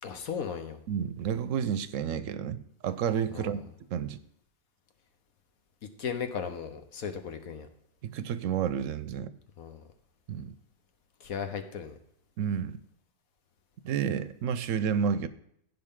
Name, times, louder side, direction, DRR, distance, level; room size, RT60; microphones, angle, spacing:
voice 1, 0.0-0.8 3.3-3.6 6.0-7.7 9.6-9.8 11.2-11.9, left 7 dB, 75° left, 7 dB, 1.4 m, -36 dB
voice 2, 0.9-3.6 3.9-4.2 8.0-9.3 10.3-10.5 12.4-12.8 13.8-15.3, right 8 dB, 70° right, 14 dB, 0.9 m, -30 dB
15.0 x 5.6 x 3.7 m, 0.74 s
omnidirectional pair, 1.5 m